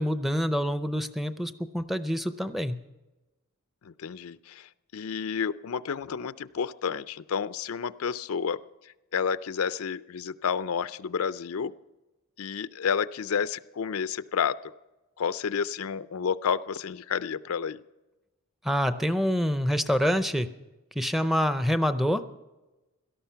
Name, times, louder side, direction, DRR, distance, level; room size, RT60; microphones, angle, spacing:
voice 1, 0.0-2.8 18.6-20.5 21.0-22.2, equal, ahead, 10 dB, 0.5 m, -26 dB
voice 2, 3.8-8.6 8.8-11.7 12.4-14.6 15.2-17.8, left 6 dB, 85° left, 15 dB, 0.5 m, -30 dB
17.5 x 13.0 x 5.7 m, 1.1 s
head